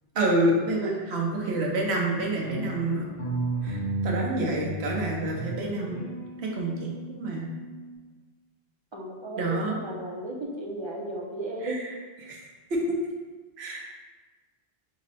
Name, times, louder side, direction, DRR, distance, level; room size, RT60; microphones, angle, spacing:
voice 1, 0.1-3.1 3.6-6.0 6.4-7.5 9.4-9.8 11.6-11.9 12.2-12.4 12.7-12.9 13.6-13.9, right 1 dB, 90° right, -1 dB, 1.1 m, -28 dB
sound 1, 2.5-7.9, right 2 dB, 60° left, 1.1 m, -34 dB
voice 2, 8.9-11.8, right 1 dB, 35° right, -2 dB, 0.5 m, -34 dB
5.1 x 2.1 x 4.0 m, 1.3 s
omnidirectional pair, 1.1 m